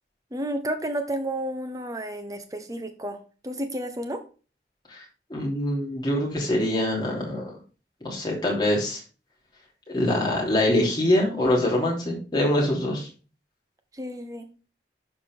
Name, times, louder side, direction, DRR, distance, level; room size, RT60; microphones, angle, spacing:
voice 1, 0.3-3.2 3.4-4.2 14.0-14.5, right 1 dB, 20° right, 6 dB, 1.0 m, -31 dB
voice 2, 5.3-7.5 8.0-9.0 9.9-13.1, left 1 dB, 25° left, -2 dB, 3.1 m, -24 dB
12.0 x 4.3 x 3.7 m, 0.36 s
head